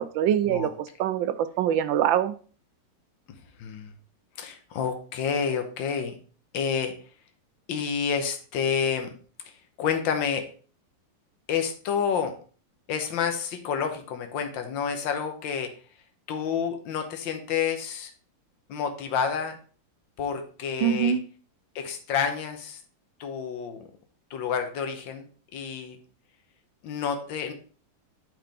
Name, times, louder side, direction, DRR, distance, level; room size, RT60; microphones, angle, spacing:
voice 1, 0.0-2.3 20.8-21.2, right 10 dB, 80° right, 12 dB, 1.3 m, -24 dB
voice 2, 3.6-3.9 4.4-6.2 6.5-6.9 7.7-9.1 9.8-10.5 11.5-12.3 12.9-15.7 16.3-18.1 18.7-19.6 20.2-21.2 21.7-22.8 23.2-23.8 24.3-25.3 25.5-26.0 26.8-27.5, left 7 dB, 75° left, 6 dB, 1.7 m, -29 dB
9.0 x 4.9 x 3.4 m, 0.40 s
omnidirectional pair, 2.1 m